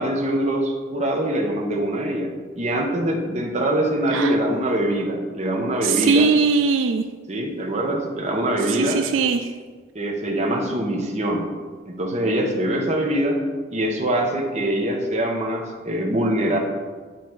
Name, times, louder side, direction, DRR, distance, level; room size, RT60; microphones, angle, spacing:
voice 1, 0.0-2.3 2.6-6.3 7.3-9.0 9.9-11.5 11.9-13.4 13.7-16.6, right 1 dB, 35° right, 1 dB, 1.0 m, -23 dB
voice 2, 5.8-7.0 8.7-9.5, right 4 dB, 85° right, 8 dB, 0.4 m, -20 dB
9.5 x 4.0 x 4.6 m, 1.5 s
head